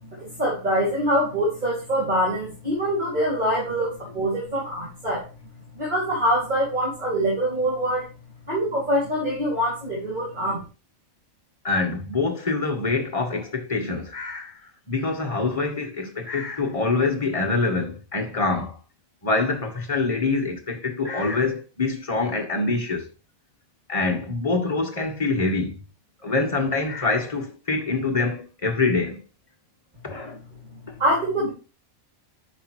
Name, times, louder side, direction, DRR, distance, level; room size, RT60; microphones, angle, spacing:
voice 1, 0.0-5.2 5.7-8.1 8.5-10.6 31.0-31.5, equal, 30° right, 2.7 m, -24 dB
voice 2, 11.6-14.5 14.9-18.8 19.2-23.1 23.9-25.7 26.2-29.2 30.0-30.4 30.9-31.0, left 3 dB, 25° left, 1.3 m, -25 dB
8.6 x 5.6 x 3.1 m
omnidirectional pair, 1.5 m